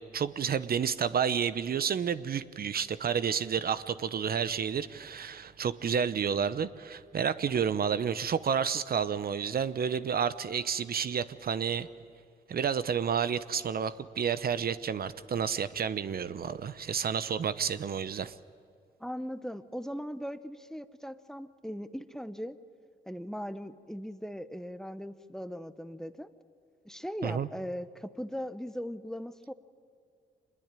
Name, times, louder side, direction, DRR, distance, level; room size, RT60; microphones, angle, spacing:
voice 1, 0.0-11.9 12.5-18.3 27.2-27.5, right 7 dB, 55° right, 14 dB, 0.9 m, -30 dB
voice 2, 19.0-22.6 23.1-26.3 26.8-29.5, equal, ahead, 13 dB, 1.1 m, -39 dB
24.5 x 21.0 x 9.1 m, 2.3 s
cardioid pair, 70°, 19 cm